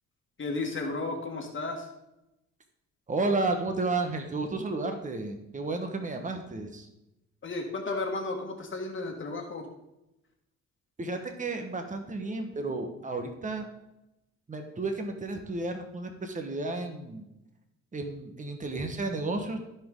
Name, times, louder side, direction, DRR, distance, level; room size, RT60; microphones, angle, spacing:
voice 1, 0.4-1.9 7.4-9.7, left 3 dB, 40° left, 2 dB, 1.8 m, -33 dB
voice 2, 3.1-6.9 11.0-13.7 14.5-17.2 17.9-19.6, right 3 dB, 25° right, 5 dB, 1.4 m, -32 dB
14.5 x 5.3 x 3.9 m, 0.90 s
cardioid pair, 90°, 30 cm